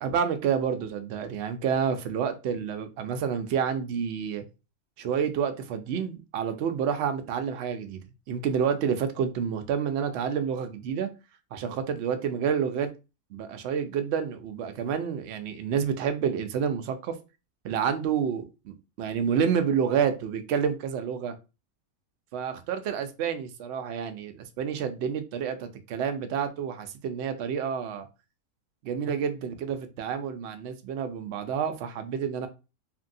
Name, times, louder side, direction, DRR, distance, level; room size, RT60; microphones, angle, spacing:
voice 1, 0.0-4.4 5.0-8.0 8.3-11.1 11.5-12.9 13.3-17.2 17.6-21.4 22.3-28.1 28.8-32.5, right 7 dB, 70° right, 0.6 m, -29 dB
2.9 x 2.6 x 2.6 m
omnidirectional pair, 1.6 m